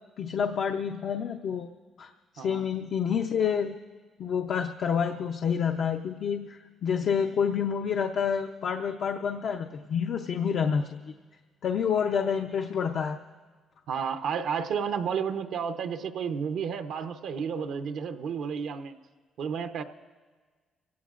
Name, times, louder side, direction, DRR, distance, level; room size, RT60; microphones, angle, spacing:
voice 1, 0.2-1.7 2.0-3.8 4.2-11.1 11.6-13.2, left 7 dB, 65° left, 4 dB, 0.6 m, -28 dB
voice 2, 13.9-19.0 19.4-19.8, right 6 dB, 75° right, 8 dB, 0.8 m, -32 dB
25.5 x 17.0 x 2.5 m, 1.5 s
cardioid pair, 90°, 0 cm